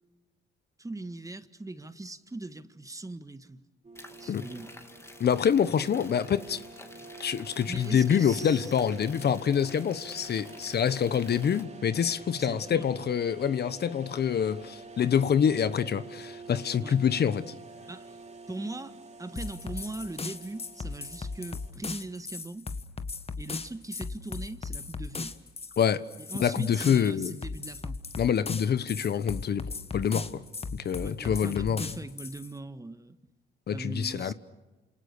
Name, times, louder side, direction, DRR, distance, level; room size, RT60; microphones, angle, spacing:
voice 1, 0.8-3.6 4.2-4.7 7.7-8.7 12.3-13.1 16.8-17.0 17.9-18.2 18.5-22.7 23.4-25.3 26.3-28.0 31.0-33.2 33.7-34.3, right 2 dB, 15° right, 1.6 m, -40 dB
sound 1, 3.8-21.7, right 4 dB, 35° right, 3.2 m, -47 dB
sound 2, 3.9-11.6, left 1 dB, 15° left, 3.0 m, -50 dB
voice 2, 5.2-6.6 7.2-17.5 25.8-26.0 26.4-27.3 28.2-30.4 30.7-31.8 33.7-34.3, left 8 dB, 60° left, 1.2 m, -26 dB
sound 3, 19.4-32.5, left 4 dB, 30° left, 1.7 m, -37 dB
29.0 x 27.0 x 6.8 m
cardioid pair, 80°, 19 cm